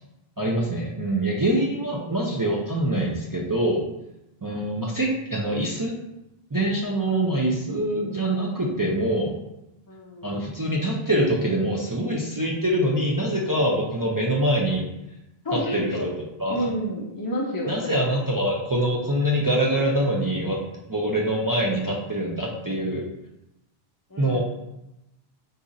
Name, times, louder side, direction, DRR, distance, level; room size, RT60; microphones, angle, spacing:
voice 1, 0.4-3.8 4.4-5.9 6.5-9.4 10.2-14.9 15.5-16.1 16.4-16.6 17.7-20.6 20.9-23.1 24.2-24.4, right 1 dB, 35° right, -3 dB, 0.3 m, -24 dB
voice 2, 9.9-10.4 15.4-16.1 16.5-18.1 24.1-24.4, equal, 25° left, -2 dB, 0.5 m, -30 dB
4.0 x 2.5 x 4.0 m, 0.90 s
omnidirectional pair, 1.0 m